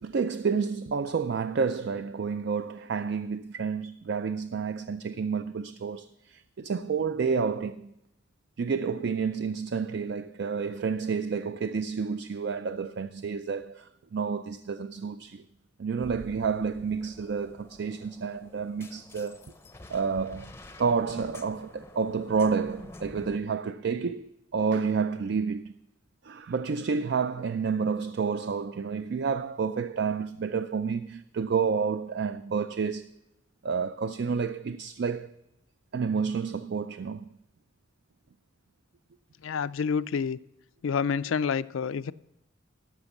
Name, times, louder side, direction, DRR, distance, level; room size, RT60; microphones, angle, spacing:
voice 1, 0.0-7.9 8.6-15.4 15.8-19.4 19.9-20.5 20.8-25.7 26.2-33.1 33.6-35.3 35.9-37.3, right 5 dB, 55° right, 0.4 m, -30 dB
sound 1, 16.0-23.4, left 2 dB, 15° left, 0.6 m, -48 dB
voice 2, 39.4-40.4 40.8-42.1, left 6 dB, 80° left, 0.4 m, -28 dB
13.0 x 5.9 x 7.1 m
head